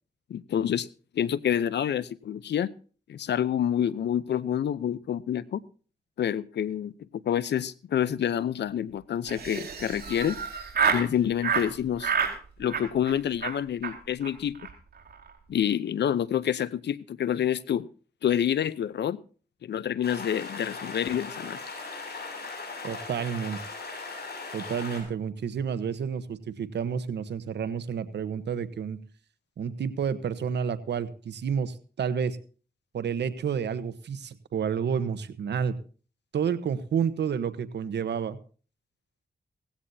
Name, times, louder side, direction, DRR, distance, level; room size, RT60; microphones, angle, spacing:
voice 1, 0.3-0.9 1.1-2.7 3.1-5.6 6.2-10.4 10.9-12.1 12.6-14.6 15.5-17.9 18.2-19.2 19.6-21.6, left 9 dB, 85° left, 0.7 m, -28 dB
Laughter, 9.3-11.1 11.4-11.7 12.0-12.4 12.7-13.1 13.4-13.5 13.8-13.9 14.2-14.3 14.5-14.7 15.0-15.3, right 6 dB, 65° right, 4.8 m, -28 dB
sound 1, 20.0-25.0, left 3 dB, 70° left, 6.7 m, -39 dB
voice 2, 22.8-23.6 24.5-29.0 29.6-32.4 32.9-35.7 36.3-38.4, right 7 dB, 85° right, 1.1 m, -30 dB
18.0 x 16.0 x 2.8 m
cardioid pair, 65°, 17 cm